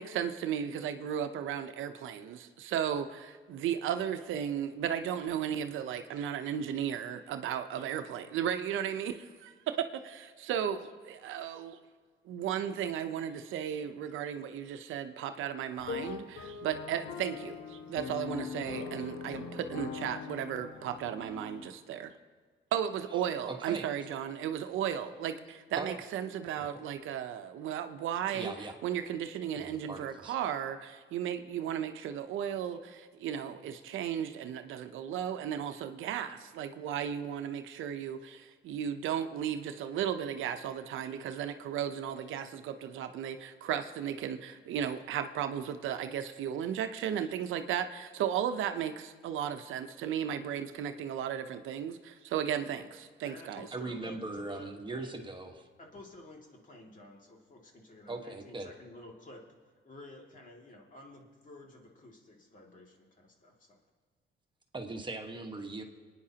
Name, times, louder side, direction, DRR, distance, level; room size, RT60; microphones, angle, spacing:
voice 1, 0.0-11.8 12.3-22.1 22.7-28.5 28.8-52.8 53.2-53.7, right 9 dB, 85° right, 9 dB, 0.7 m, -35 dB
sound 1, 15.8-21.7, left 5 dB, 75° left, 1.1 m, -41 dB
voice 2, 23.5-23.9 25.7-26.0 26.6-26.8 28.3-28.8 29.5-30.3 53.7-55.7 58.1-58.7 64.7-65.8, right 2 dB, 25° right, 3 dB, 1.3 m, -40 dB
voice 3, 53.2-55.3 55.8-63.8, left 2 dB, 40° left, 0 dB, 2.3 m, -51 dB
25.5 x 9.8 x 2.9 m, 1.6 s
cardioid pair, 90°, 20 cm